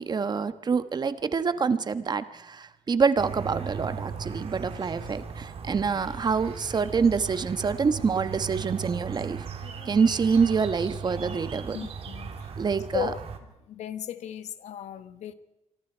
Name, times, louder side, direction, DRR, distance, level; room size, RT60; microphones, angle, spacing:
voice 1, 0.0-9.5 9.8-11.8 12.6-13.1, right 5 dB, 40° right, 12 dB, 1.2 m, -26 dB
sound 1, 3.2-13.4, right 6 dB, 60° right, 2.9 m, -37 dB
voice 2, 9.6-10.0 11.7-12.5 12.9-13.2 13.7-15.3, left 10 dB, 85° left, 12 dB, 1.3 m, -36 dB
27.0 x 24.5 x 4.6 m, 0.91 s
cardioid pair, 110°, 11 cm